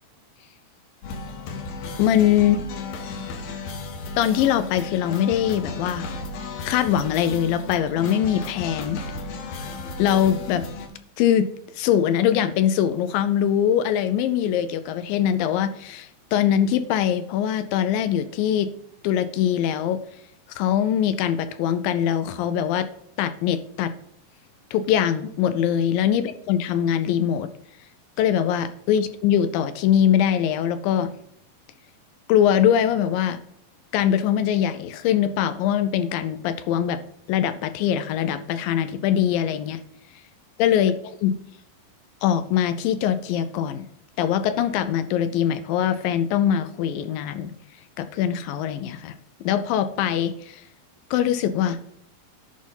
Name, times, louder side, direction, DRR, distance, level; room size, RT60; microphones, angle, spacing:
sound 1, 1.0-10.9, left 3 dB, 65° left, 1.9 m, -34 dB
voice 1, 2.0-2.6 4.2-6.1 6.6-9.0 10.0-10.7 11.2-11.5 11.8-18.7 19.0-20.0 20.6-22.9 23.2-23.9 24.7-27.5 28.2-31.1 32.3-33.4 33.9-37.0 37.3-39.8 40.6-41.4 42.2-43.9 44.2-47.5 48.0-49.2 49.4-50.6 51.1-51.8, left 10 dB, 80° left, 12 dB, 2.3 m, -22 dB
11.0 x 4.3 x 5.4 m, 0.71 s
omnidirectional pair, 4.2 m